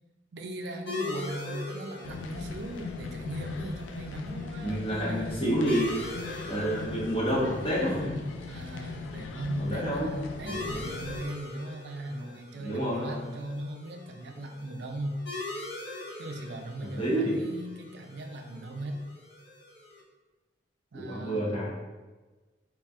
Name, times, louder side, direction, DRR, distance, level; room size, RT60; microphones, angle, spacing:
voice 1, 0.3-5.4 8.5-15.2 16.2-19.0 20.9-21.7, right 1 dB, 65° right, 4 dB, 0.4 m, -38 dB
sound 1, 0.9-20.0, left 2 dB, 75° left, 0.8 m, -42 dB
sound 2, 2.0-11.2, left 4 dB, 90° left, 0.3 m, -40 dB
voice 2, 4.6-6.0 6.4-8.2 9.6-10.1 10.4-10.7 12.6-13.3 16.9-17.4 20.9-21.7, equal, 30° left, -7 dB, 1.1 m, -29 dB
4.0 x 2.4 x 3.4 m, 1.3 s
head